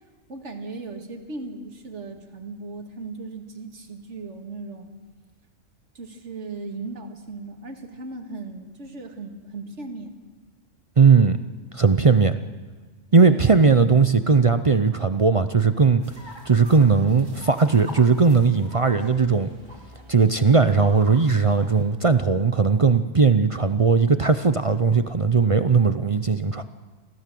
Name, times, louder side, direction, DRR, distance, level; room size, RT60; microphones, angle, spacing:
voice 1, 0.3-4.9 5.9-10.1 13.2-13.5, right 3 dB, 60° right, 4 dB, 2.3 m, -37 dB
voice 2, 11.0-11.4 11.7-12.4 13.1-16.0 16.5-19.5 20.1-26.6, right 5 dB, 35° right, 10 dB, 0.5 m, -18 dB
sound 1, 16.0-21.8, right 1 dB, 20° right, 3.7 m, -44 dB
26.0 x 15.5 x 7.7 m, 1.4 s
omnidirectional pair, 1.3 m